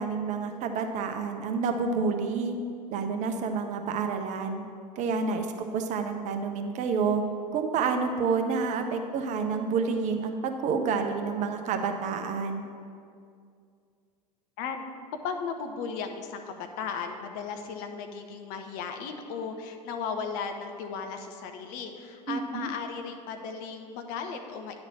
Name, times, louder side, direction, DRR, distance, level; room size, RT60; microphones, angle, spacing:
voice 1, 0.0-2.5 2.9-4.6 5.0-5.5 5.7-7.2 7.5-12.7 22.3-22.7, right 5 dB, 35° right, 5 dB, 0.7 m, -29 dB
voice 2, 5.3-5.6 14.6-14.8 15.2-24.8, left 5 dB, 45° left, 5 dB, 0.8 m, -36 dB
9.7 x 4.0 x 7.2 m, 2.3 s
figure-of-eight pair, 80°, 21 cm